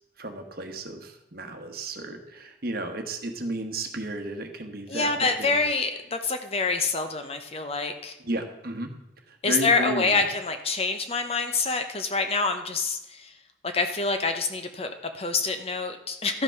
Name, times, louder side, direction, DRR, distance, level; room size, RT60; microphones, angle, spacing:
voice 1, 0.2-5.6 8.2-8.9 9.3-10.2, right 2 dB, 50° right, 5 dB, 1.2 m, -33 dB
voice 2, 4.9-8.2 9.4-13.3 13.6-16.4, left 4 dB, 30° left, 7 dB, 0.8 m, -26 dB
12.5 x 5.9 x 5.8 m, 0.91 s
head